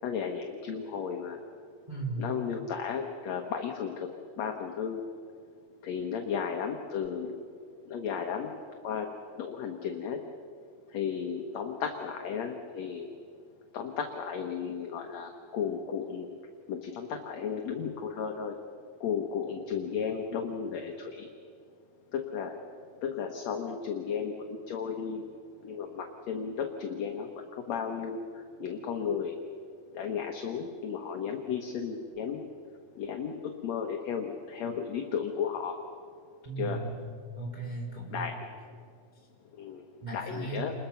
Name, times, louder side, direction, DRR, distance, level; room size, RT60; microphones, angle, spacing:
voice 1, 0.0-1.4 2.2-4.1 4.4-5.0 5.8-7.4 7.8-8.5 8.8-9.1 9.4-10.2 10.9-13.1 13.7-16.3 16.7-18.5 19.0-21.3 22.1-22.6 23.0-25.2 25.6-29.3 29.9-32.4 33.0-33.4 33.6-35.8 36.6-36.8 38.1-38.5 39.5-39.8 40.1-40.7, left 7 dB, 60° left, 3 dB, 2.1 m, -34 dB
voice 2, 1.9-2.3 36.4-37.0 37.3-38.3 40.0-40.6, right 3 dB, 10° right, -2 dB, 3.5 m, -36 dB
28.5 x 22.0 x 5.8 m, 2.3 s
omnidirectional pair, 4.1 m